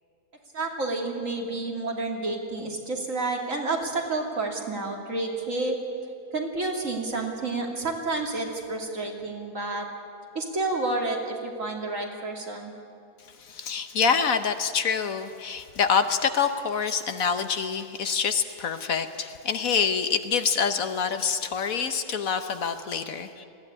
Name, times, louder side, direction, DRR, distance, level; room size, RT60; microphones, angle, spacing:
voice 1, 0.5-5.8 6.3-9.9 10.3-12.7, right 2 dB, 55° right, 1 dB, 3.0 m, -30 dB
voice 2, 13.4-23.5, left 6 dB, 65° left, 9 dB, 1.3 m, -26 dB
20.5 x 15.5 x 9.8 m, 2.6 s
omnidirectional pair, 1.7 m